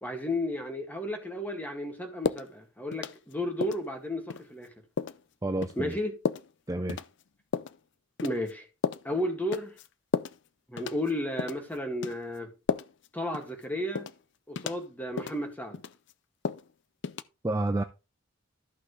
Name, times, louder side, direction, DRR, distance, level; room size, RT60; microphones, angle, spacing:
voice 1, 0.0-4.7 5.8-6.2 8.2-8.7 9.0-9.7 10.7-12.5 13.1-14.1 14.5-15.8, left 1 dB, 10° left, 2.0 m, -33 dB
sound 1, 2.2-2.5 2.9-3.3 3.6-3.8 4.3-4.4 5.0-5.2 5.6-5.8 6.3-6.5 6.9-7.1 7.5-7.8 8.2-8.5 8.8-9.1 9.5-9.9 10.1-10.4 10.8-11.1 11.4-11.6 12.0-12.2 12.7-13.1 13.3-13.5 14.0-14.2 14.6-14.8 15.2-15.4 15.7-16.1 16.5-16.7 17.0-17.2, left 5 dB, 60° left, 0.5 m, -32 dB
voice 2, 5.4-5.9 6.7-7.0 17.4-17.8, right 2 dB, 15° right, 0.5 m, -29 dB
13.5 x 5.9 x 3.2 m
head